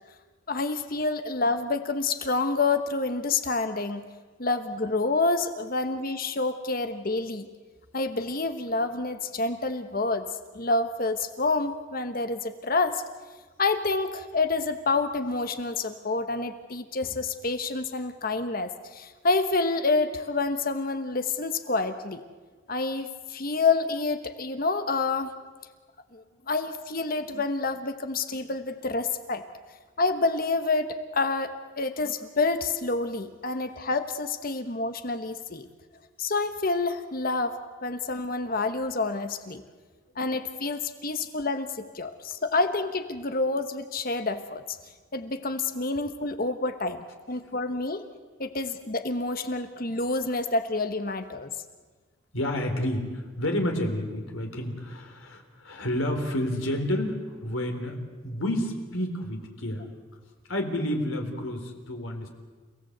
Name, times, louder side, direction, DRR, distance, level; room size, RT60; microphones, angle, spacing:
voice 1, 0.5-4.0 4.4-7.5 7.9-10.3 10.5-13.0 13.6-22.2 22.7-25.3 26.1-29.4 30.0-35.7 36.2-39.6 40.2-44.8 45.1-47.0 47.3-48.0 48.4-51.5, left 3 dB, 45° left, 9 dB, 1.2 m, -28 dB
voice 2, 52.3-58.0 58.2-59.9 60.5-62.3, left 1 dB, 75° left, 3 dB, 3.8 m, -30 dB
30.0 x 17.0 x 8.0 m, 1.4 s
head